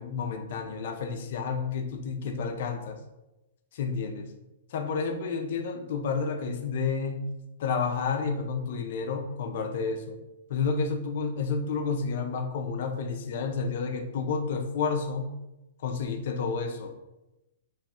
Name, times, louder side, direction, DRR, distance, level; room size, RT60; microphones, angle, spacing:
voice 1, 0.0-3.0 3.7-4.3 4.7-7.3 7.6-10.2 10.5-15.3 15.8-16.9, left 5 dB, 60° left, 5 dB, 0.5 m, -30 dB
3.0 x 2.3 x 4.2 m, 0.95 s
hypercardioid pair, 135°, 0 cm